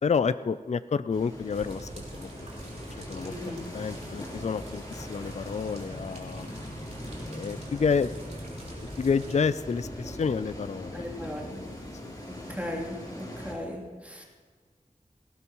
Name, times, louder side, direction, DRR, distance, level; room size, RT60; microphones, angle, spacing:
voice 1, 0.0-2.3 2.7-3.3 3.7-6.5 7.3-8.1 8.7-11.8 12.0-12.2, left 5 dB, 50° left, 14 dB, 0.4 m, -30 dB
sound 1, 1.1-13.5, left 1 dB, 25° left, 3.7 m, -41 dB
sound 2, 1.5-9.4, right 1 dB, 50° right, 3.6 m, -44 dB
voice 2, 3.2-3.6 10.9-11.6 12.3-14.2, left 1 dB, 10° right, -2 dB, 3.0 m, -37 dB
18.0 x 18.0 x 3.1 m, 1.5 s
wide cardioid pair, 70°, 14 cm